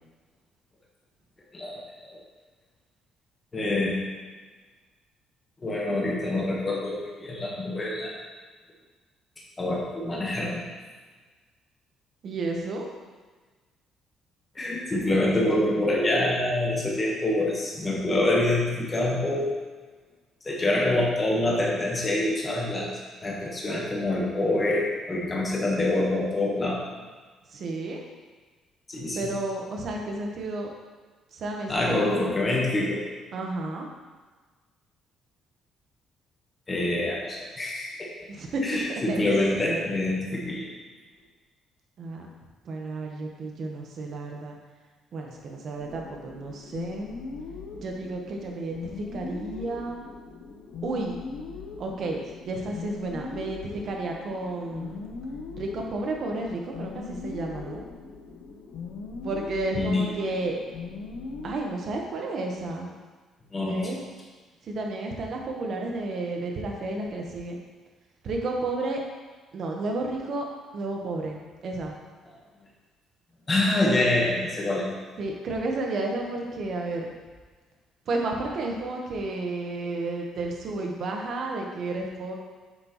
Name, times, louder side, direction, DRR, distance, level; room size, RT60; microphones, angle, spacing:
voice 1, 1.5-2.2 3.5-4.0 5.6-8.1 9.6-10.6 14.5-19.5 20.4-22.9 23.2-26.8 28.9-29.3 31.7-33.0 36.7-38.1 38.6-40.7 59.7-60.0 63.5-64.0 72.3-72.4 73.5-74.9, left 1 dB, 20° left, -3 dB, 1.2 m, -26 dB
voice 2, 12.2-12.9 27.5-28.0 29.1-30.7 31.3-32.3 33.3-33.9 38.3-38.8 39.1-40.0 42.0-42.3 42.6-44.6 45.1-47.1 47.7-50.0 50.8-51.2 51.8-55.0 55.6-57.8 59.2-60.6 61.4-63.0 63.6-64.0 64.6-67.6 68.2-69.0 69.5-70.4 70.7-71.9 75.2-77.1 78.1-82.4, right 2 dB, 40° right, 1 dB, 1.0 m, -32 dB
sound 1, 45.8-61.6, left 4 dB, 65° left, 0.8 m, -40 dB
8.0 x 6.0 x 3.0 m, 1.4 s
cardioid pair, 175°, 0 cm